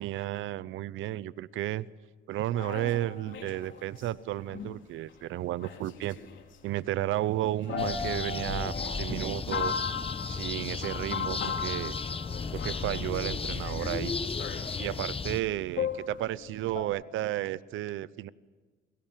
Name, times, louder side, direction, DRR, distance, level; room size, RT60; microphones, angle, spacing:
voice 1, 0.0-1.8 2.3-6.2 6.6-9.8 10.3-11.9 12.5-14.1 14.8-18.3, right 14 dB, 85° right, 18 dB, 0.8 m, -33 dB
sound 1, 2.5-4.1 4.5-4.8 5.1-5.2 5.6-6.6 7.1-7.2 7.6-15.0 15.8-16.8, left 6 dB, 70° left, 3.9 m, -37 dB
sound 2, 7.8-15.4, left 5 dB, 30° left, 1.1 m, -34 dB
29.0 x 23.5 x 7.5 m, 1.4 s
cardioid pair, 90°, 20 cm